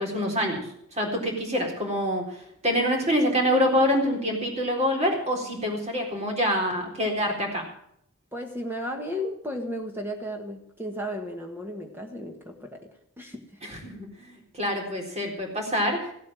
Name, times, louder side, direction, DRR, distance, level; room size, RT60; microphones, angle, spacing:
voice 1, 0.0-7.6 13.6-16.1, equal, 30° right, 1 dB, 4.0 m, -26 dB
voice 2, 8.3-12.9 13.2-13.5, equal, 10° right, 3 dB, 1.4 m, -34 dB
16.0 x 8.5 x 7.5 m, 0.73 s
head